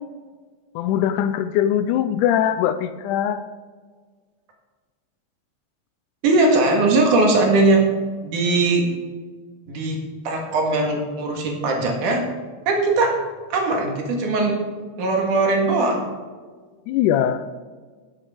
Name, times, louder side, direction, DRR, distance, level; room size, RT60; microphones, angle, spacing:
voice 1, 0.8-3.4 16.9-17.5, left 10 dB, 90° left, 11 dB, 2.1 m, -21 dB
voice 2, 6.2-7.9 8.2-8.9 9.7-10.0 10.3-12.3 12.7-13.2 13.5-14.6 15.0-16.0, right 2 dB, 85° right, 1 dB, 3.4 m, -19 dB
11.5 x 7.8 x 4.9 m, 1.5 s
omnidirectional pair, 3.5 m